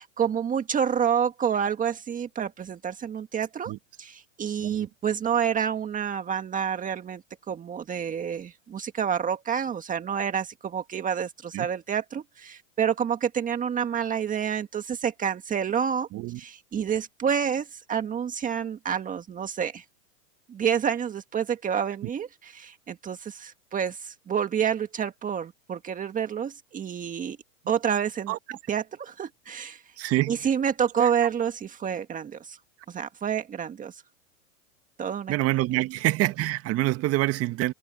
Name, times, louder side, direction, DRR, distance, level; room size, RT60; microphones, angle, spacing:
voice 1, 0.0-3.7 4.0-7.2 7.5-16.1 16.4-19.8 20.5-27.4 27.7-28.4 28.7-29.8 30.3-32.6 32.9-34.0 35.0-35.3, right 8 dB, 20° right, 1.8 m, -28 dB
voice 2, 28.3-28.6 30.0-30.4 35.3-37.7, right 16 dB, 35° right, 2.0 m, -26 dB
hypercardioid pair, 125°, 41 cm